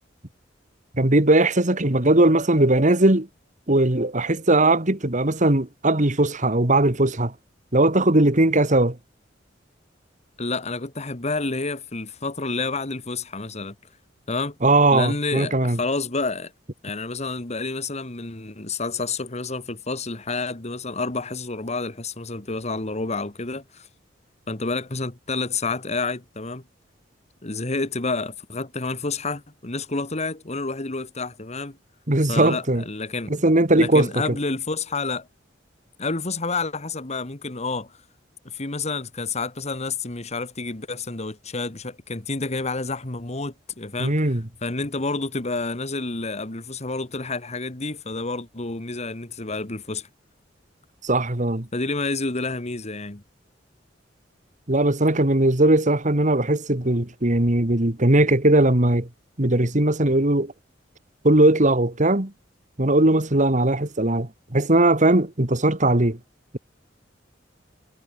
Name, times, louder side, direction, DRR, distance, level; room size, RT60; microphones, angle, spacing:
voice 1, 0.9-3.3 3.7-7.3 7.7-9.0 14.6-15.8 32.1-32.8 33.3-34.1 44.0-44.4 51.0-51.7 54.7-59.1 59.4-60.5 61.2-62.3 62.8-66.2, right 2 dB, 45° right, 2.3 m, -19 dB
voice 2, 10.4-13.8 14.3-14.6 14.9-16.5 16.8-23.9 24.5-26.6 27.4-31.8 32.3-33.3 33.8-35.3 36.0-38.0 38.5-44.2 44.6-50.1 51.7-53.2, left 3 dB, 40° left, 1.8 m, -29 dB
head